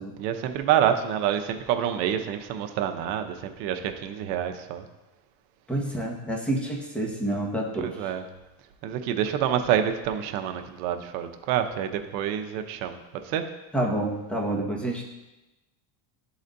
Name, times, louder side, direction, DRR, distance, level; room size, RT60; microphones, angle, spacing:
voice 1, 0.2-4.8 7.8-8.2 8.8-13.5, right 9 dB, 80° right, 7 dB, 0.8 m, -27 dB
voice 2, 5.7-8.1 13.7-15.0, right 1 dB, ahead, -2 dB, 1.3 m, -28 dB
11.5 x 4.1 x 2.6 m, 1.0 s
supercardioid pair, 100°, 50 cm